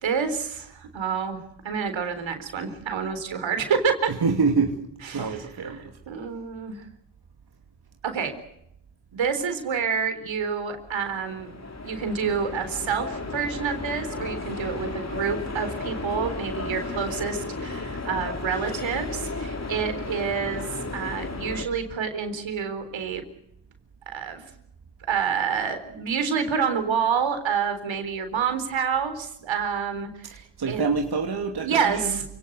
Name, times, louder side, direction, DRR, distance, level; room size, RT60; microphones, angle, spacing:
voice 1, 0.0-1.4 1.6-4.1 5.0-6.8 8.0-8.3 9.1-11.5 11.8-23.2 24.1-24.5 25.1-30.8 31.6-32.2, right 6 dB, 75° right, 8 dB, 4.1 m, -28 dB
voice 2, 4.2-4.7 5.1-5.9 30.6-32.2, right 4 dB, 55° right, 3 dB, 2.7 m, -25 dB
sound 1, 10.8-21.6, left 3 dB, 35° left, 3.9 m, -34 dB
29.0 x 18.5 x 8.2 m, 0.79 s
supercardioid pair, 50°, 46 cm